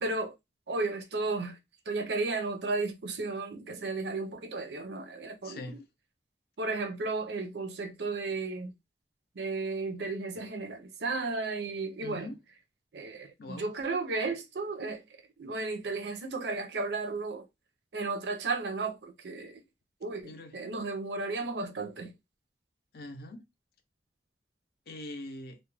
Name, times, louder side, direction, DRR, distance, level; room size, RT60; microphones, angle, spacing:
voice 1, 0.0-0.4 0.7-1.6 1.9-5.6 6.6-8.7 9.4-12.3 12.9-15.0 15.4-17.5 17.9-19.6 20.0-22.1, right 3 dB, 75° right, 0.5 m, -34 dB
voice 2, 5.4-5.8 12.0-12.4 13.4-13.7 20.2-20.5 22.9-23.5 24.9-25.6, left 2 dB, 55° left, 0.5 m, -42 dB
2.3 x 2.1 x 3.1 m
head